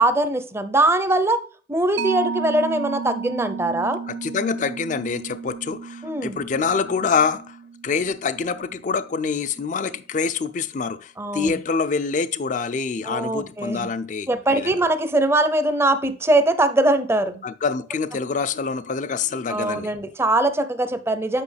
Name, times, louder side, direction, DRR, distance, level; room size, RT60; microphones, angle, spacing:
voice 1, 0.0-1.4 1.7-4.0 6.0-6.4 11.2-11.6 13.0-13.9 14.3-17.4 19.5-21.4, right 2 dB, 15° right, 0.5 m, -21 dB
Mallet percussion, 2.0-9.0, right 5 dB, 75° right, 0.4 m, -33 dB
voice 2, 4.1-7.6 7.8-14.8 17.4-19.9, left 5 dB, 45° left, 0.4 m, -26 dB
8.4 x 5.6 x 3.3 m
head